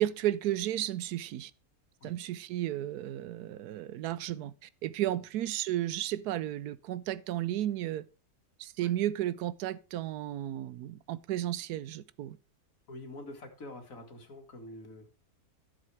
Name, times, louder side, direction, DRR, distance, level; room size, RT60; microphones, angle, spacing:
voice 1, 0.0-1.5 2.0-8.0 8.6-12.4, right 13 dB, 80° right, 1.1 m, -33 dB
voice 2, 12.9-15.1, left 1 dB, 60° left, 2.2 m, -46 dB
12.5 x 7.5 x 3.3 m
omnidirectional pair, 1.6 m